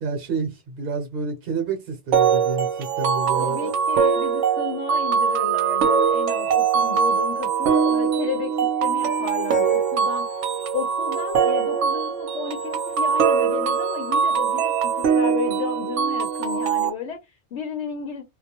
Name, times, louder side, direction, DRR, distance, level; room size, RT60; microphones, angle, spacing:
voice 1, 0.0-3.7, right 4 dB, 55° right, 0.9 m, -29 dB
sound 1, 2.1-16.9, right 7 dB, 85° right, 0.9 m, -22 dB
voice 2, 3.4-10.2 10.7-18.2, left 7 dB, 70° left, 0.9 m, -33 dB
2.3 x 2.2 x 2.8 m
omnidirectional pair, 1.2 m